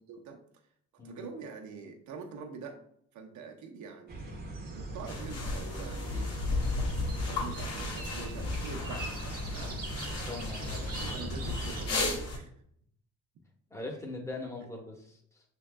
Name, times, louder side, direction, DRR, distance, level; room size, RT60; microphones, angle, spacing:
voice 1, 0.1-0.4 1.0-2.8 3.1-4.3 4.7-6.3 7.1-9.8 10.7-12.5, right 5 dB, 70° right, 3 dB, 0.9 m, -45 dB
sound 1, 4.1-11.9, right 2 dB, 30° right, 1.0 m, -40 dB
sound 2, 5.1-12.4, left 3 dB, 55° left, 1.5 m, -34 dB
voice 2, 10.3-10.9 13.7-15.4, left 2 dB, 10° left, 1 dB, 1.1 m, -41 dB
6.0 x 3.8 x 2.2 m, 0.66 s
cardioid pair, 90°, 30 cm